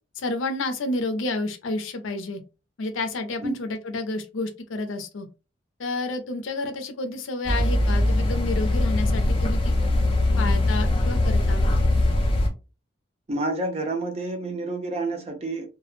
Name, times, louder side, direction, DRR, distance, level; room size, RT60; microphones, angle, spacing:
voice 1, 0.2-2.4 2.8-5.3 5.8-9.7 10.4-11.6, left 2 dB, 85° left, 0.5 m, -30 dB
sound 1, 7.5-12.5, left 1 dB, 25° left, 0.4 m, -21 dB
voice 2, 13.3-15.7, right 2 dB, 30° right, 0.5 m, -29 dB
2.3 x 2.0 x 3.0 m
head